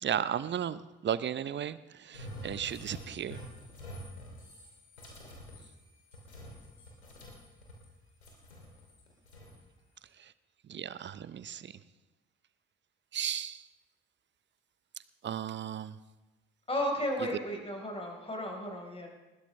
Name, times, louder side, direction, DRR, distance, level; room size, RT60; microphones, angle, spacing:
voice 1, 0.0-3.4 10.2-10.3 10.7-11.8 13.1-13.7 15.2-16.0, right 9 dB, 35° right, 16 dB, 0.7 m, -35 dB
sound 1, 2.1-7.9 8.2-9.6, equal, 90° left, 2.9 m, -48 dB
voice 2, 16.7-19.1, equal, 20° left, 0 dB, 4.2 m, -34 dB
20.5 x 16.0 x 3.3 m, 1.1 s
figure-of-eight pair, 50°, 32 cm